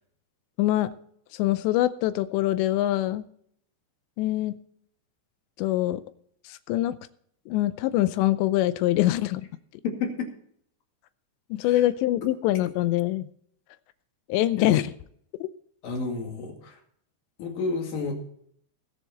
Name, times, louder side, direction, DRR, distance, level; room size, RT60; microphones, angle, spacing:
voice 1, 0.6-0.9 1.3-3.2 4.2-4.6 5.6-6.0 6.5-7.0 7.5-9.4 11.5-13.3 14.3-14.9 15.4-15.5, left 15 dB, 85° left, 14 dB, 2.9 m, -24 dB
voice 2, 9.8-10.3 11.6-11.8 14.6-14.8 15.8-16.8 17.4-18.1, left 4 dB, 60° left, 2 dB, 3.7 m, -30 dB
21.5 x 7.1 x 4.2 m, 0.66 s
omnidirectional pair, 5.0 m